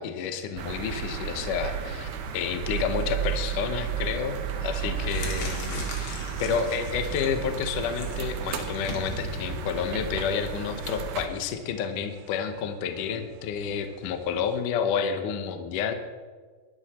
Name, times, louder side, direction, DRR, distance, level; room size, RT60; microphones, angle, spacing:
voice 1, 0.0-15.9, left 7 dB, 70° left, 7 dB, 2.1 m, -30 dB
sound 1, 0.6-11.3, right 8 dB, 65° right, 2.3 m, -33 dB
sound 2, 4.2-4.3 4.7-11.2, left 3 dB, 40° left, 2.4 m, -40 dB
sound 3, 4.9-14.6, right 3 dB, 85° right, 4.0 m, -52 dB
22.0 x 12.0 x 4.3 m, 1.5 s
omnidirectional pair, 4.8 m